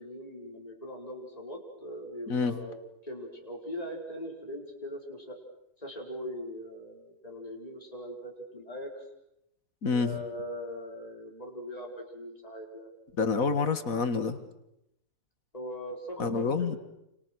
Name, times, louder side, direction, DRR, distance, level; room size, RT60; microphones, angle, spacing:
voice 1, 0.0-2.8 3.0-5.4 5.8-9.0 9.9-12.9 15.5-16.8, equal, 25° left, 1 dB, 5.0 m, -40 dB
voice 2, 2.3-2.6 9.8-10.2 13.2-14.4 16.2-16.8, left 5 dB, 60° left, 10 dB, 2.2 m, -27 dB
29.5 x 29.0 x 6.3 m, 0.83 s
omnidirectional pair, 1.7 m